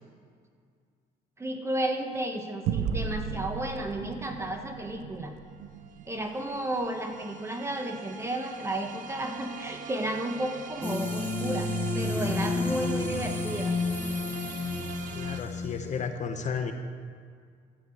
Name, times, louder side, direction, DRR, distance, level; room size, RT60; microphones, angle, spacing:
voice 1, 1.4-5.3 6.1-13.8, right 1 dB, 15° right, 4 dB, 1.2 m, -33 dB
sound 1, 2.6-7.5, right 7 dB, 90° right, 0.5 m, -36 dB
sound 2, 5.2-5.3 5.5-15.4, right 6 dB, 50° right, 0.8 m, -43 dB
sound 3, 10.8-16.0, left 3 dB, 10° left, 1.2 m, -31 dB
voice 2, 15.1-16.7, left 6 dB, 45° left, 6 dB, 0.9 m, -33 dB
13.0 x 4.8 x 8.5 m, 2.1 s
cardioid pair, 110°, 17 cm